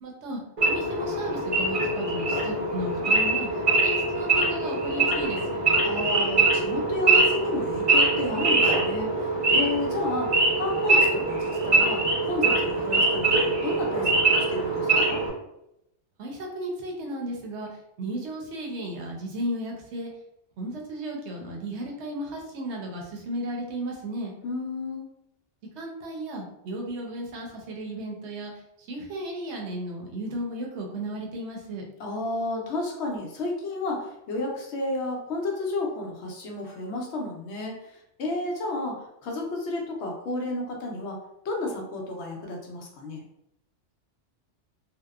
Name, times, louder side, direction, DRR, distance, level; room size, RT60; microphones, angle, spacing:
voice 1, 0.0-3.5 3.8-5.6 16.2-17.7 18.0-20.1 20.6-24.3 25.8-28.5 28.9-31.8, right 1 dB, 70° right, 0 dB, 0.9 m, -34 dB
Wild animals / Idling, 0.6-15.3, right 2 dB, 35° right, 0.6 m, -23 dB
voice 2, 5.8-15.2 24.4-25.1 32.0-41.2 41.4-43.2, left 2 dB, 70° left, 0 dB, 0.8 m, -32 dB
2.7 x 2.1 x 2.3 m, 0.83 s
omnidirectional pair, 1.2 m